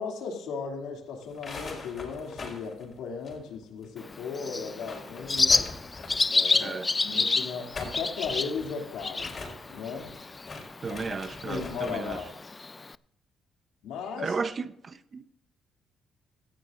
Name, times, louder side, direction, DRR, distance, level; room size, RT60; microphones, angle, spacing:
voice 1, 0.0-5.5 6.3-9.4 9.7-10.1 10.9-12.3 13.8-14.4, left 5 dB, 90° left, 2.6 m, -36 dB
sound 1, 1.2-3.9 4.1-4.2 4.6-6.4 7.5-12.3, left 3 dB, 45° left, 4.5 m, -42 dB
Bird, 4.0-12.9, left 3 dB, 25° left, 0.3 m, -30 dB
voice 2, 10.8-12.2 14.2-15.2, right 4 dB, 40° right, 0.7 m, -34 dB
17.5 x 14.5 x 2.6 m
cardioid pair, 90°, 0 cm